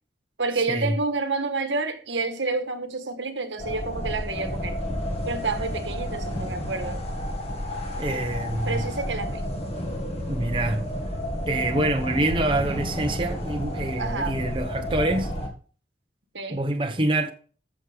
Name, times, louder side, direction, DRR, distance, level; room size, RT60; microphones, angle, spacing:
voice 1, 0.4-4.8 5.2-7.0 8.6-9.5 14.0-14.4 16.3-16.6, right 3 dB, 85° right, 1.5 m, -29 dB
sound 1, 3.6-15.5, equal, 35° left, 2.1 m, -31 dB
voice 2, 8.0-8.8 10.3-10.9 11.5-15.3 16.5-17.3, right 1 dB, 30° right, 0.9 m, -26 dB
14.0 x 6.3 x 3.5 m
head